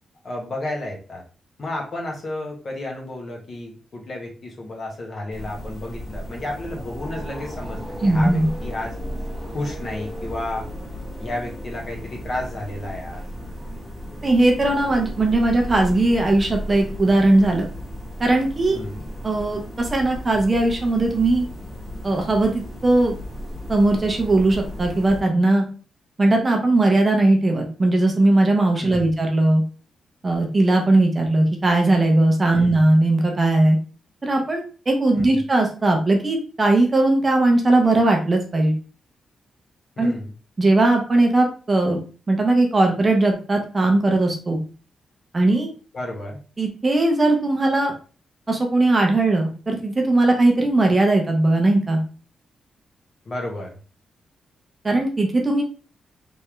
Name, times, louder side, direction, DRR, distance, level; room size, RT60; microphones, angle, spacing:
voice 1, 0.2-1.2 1.6-8.9 9.5-10.7 11.2-13.3 18.7-19.0 28.8-29.1 32.5-32.9 35.1-35.4 40.0-40.3 45.9-46.4 53.2-53.8, left 1 dB, 40° left, -1 dB, 1.2 m, -32 dB
sound 1, 5.3-25.2, equal, 10° left, 1.0 m, -35 dB
voice 2, 8.0-8.5 14.2-17.7 18.2-18.8 19.2-21.5 22.0-23.2 23.7-25.6 26.2-29.6 30.2-33.8 34.2-38.7 40.0-40.1 40.6-42.0 42.3-44.6 45.3-45.7 46.6-47.9 48.5-52.0 54.8-55.6, right 2 dB, 20° right, 2 dB, 0.7 m, -19 dB
3.5 x 3.3 x 3.1 m, 0.37 s
wide cardioid pair, 165°, 0 cm